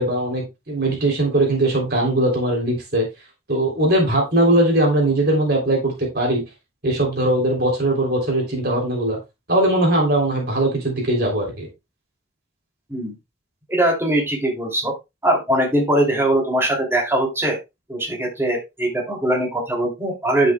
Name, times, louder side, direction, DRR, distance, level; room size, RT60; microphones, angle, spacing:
voice 1, 0.0-3.1 3.5-6.4 6.8-9.2 9.5-11.7, right 1 dB, 55° right, 0 dB, 3.2 m, -20 dB
voice 2, 13.7-14.9 15.2-17.6 17.9-20.5, right 1 dB, 15° right, 0 dB, 2.7 m, -21 dB
9.6 x 7.7 x 2.3 m, 0.23 s
head